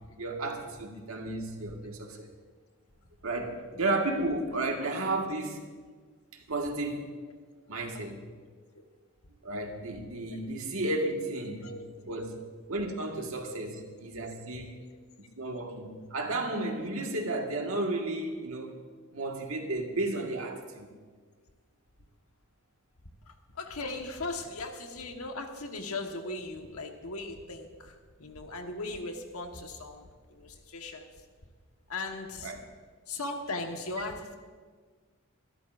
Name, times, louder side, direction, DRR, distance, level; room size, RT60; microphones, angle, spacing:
voice 1, 0.2-2.3 3.2-5.6 6.3-7.1 7.7-8.2 9.4-11.7 12.1-12.3 12.7-14.7 15.2-18.7 19.1-20.9 32.4-32.6, right 2 dB, 70° right, 2 dB, 1.7 m, -33 dB
voice 2, 23.6-31.1 31.9-32.5 33.1-34.4, left 2 dB, 85° left, 4 dB, 1.4 m, -38 dB
25.0 x 12.5 x 2.6 m, 1.5 s
head